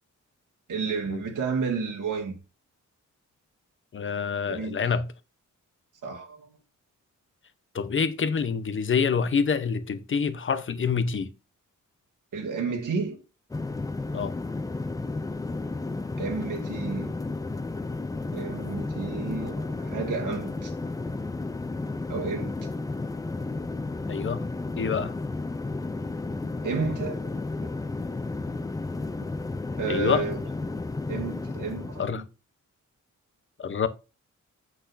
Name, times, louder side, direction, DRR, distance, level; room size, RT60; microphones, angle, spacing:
voice 1, 0.7-2.4 4.5-4.8 6.0-6.5 12.3-13.2 16.2-17.1 18.3-20.7 22.1-22.5 26.6-27.3 27.6-27.7 29.8-30.4 31.1-32.2, right 4 dB, 75° right, 2.0 m, -31 dB
voice 2, 3.9-5.1 7.7-11.3 14.1-14.3 24.1-24.5 24.8-25.2 29.9-30.2 32.0-32.2 33.6-33.9, left 6 dB, 40° left, 0.7 m, -26 dB
sound 1, 13.5-32.1, left 3 dB, 10° left, 0.3 m, -33 dB
8.1 x 6.2 x 2.5 m
wide cardioid pair, 150°, 31 cm